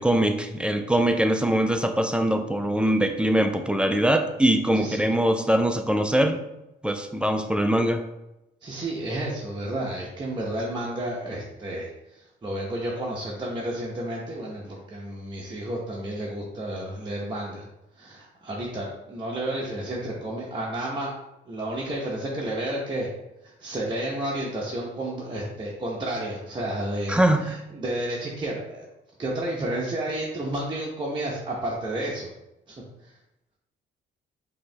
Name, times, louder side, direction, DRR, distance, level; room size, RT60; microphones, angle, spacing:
voice 1, 0.0-6.4 6.8-8.0 27.1-27.5, right 1 dB, 5° right, 6 dB, 0.4 m, -22 dB
voice 2, 8.6-17.6 18.0-21.1 21.5-23.1 23.4-28.9 29.2-32.3 32.7-32.8 33.0-33.1, right 1 dB, 25° right, -5 dB, 0.9 m, -31 dB
4.9 x 2.8 x 3.3 m, 0.92 s
cardioid pair, 90°, 20 cm